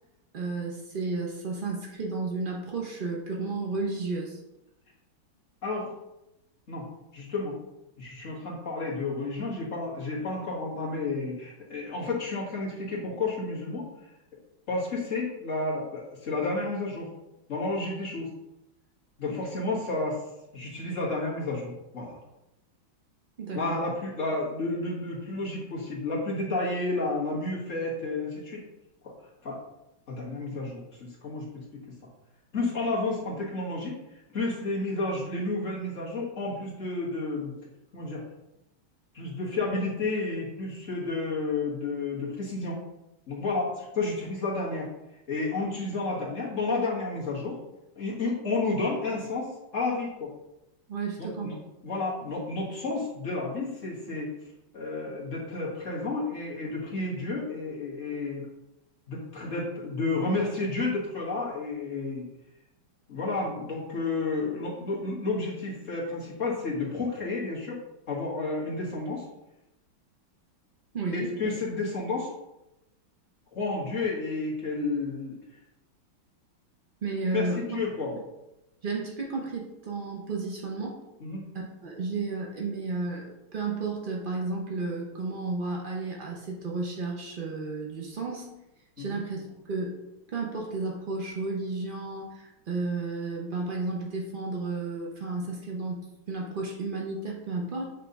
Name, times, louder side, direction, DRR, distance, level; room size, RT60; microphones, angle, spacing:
voice 1, 0.3-4.4 23.4-23.8 50.9-51.6 70.9-71.4 77.0-77.8 78.8-81.0 81.5-88.5 89.0-90.0 90.3-97.9, right 3 dB, 80° right, -1 dB, 0.4 m, -33 dB
voice 2, 5.6-5.9 6.7-6.8 7.1-7.6 8.0-13.9 14.7-17.1 17.5-18.3 19.2-20.2 20.5-22.2 23.5-28.6 29.0-29.1 29.4-29.6 30.1-32.0 32.5-34.0 34.3-37.5 37.9-38.2 39.1-42.8 43.3-44.9 45.3-47.6 48.0-50.3 51.2-51.6 51.8-54.3 54.7-58.5 59.1-62.3 63.1-69.3 71.1-72.3 73.5-75.4 77.3-78.1 81.2-81.4 89.0-89.2, left 3 dB, 40° left, -5 dB, 2.0 m, -31 dB
8.1 x 3.4 x 4.0 m, 0.93 s
omnidirectional pair, 2.3 m